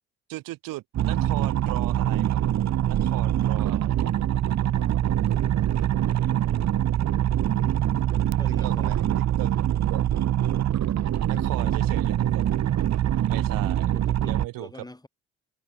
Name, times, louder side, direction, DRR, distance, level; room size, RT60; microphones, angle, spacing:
voice 1, 0.3-2.4 2.9-4.0 8.4-9.0 9.4-10.0 11.2-12.5 13.3-13.9 14.3-14.7, right 18 dB, 75° right, 2.2 m, -37 dB
sound 1, 0.9-14.5, right 11 dB, 55° right, 1.2 m, -24 dB
voice 2, 8.4-9.2 11.3-11.9 13.5-13.6 13.9-15.1, left 2 dB, 10° left, 7.3 m, -46 dB
supercardioid pair, 65°, 34 cm